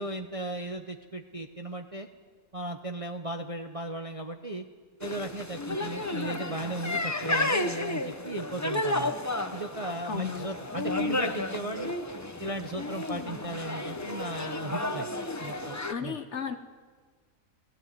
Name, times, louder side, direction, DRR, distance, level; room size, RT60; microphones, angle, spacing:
voice 1, 0.0-2.1 2.5-4.6 5.0-9.1 9.5-11.9 12.4-15.1 15.4-16.2, right 2 dB, 30° right, 5 dB, 0.7 m, -36 dB
sound 1, 5.0-15.9, left 2 dB, 15° left, 0.6 m, -32 dB
voice 2, 10.0-10.5 15.9-16.6, left 5 dB, 50° left, 9 dB, 1.1 m, -34 dB
17.5 x 16.0 x 9.3 m, 1.6 s
omnidirectional pair, 1.6 m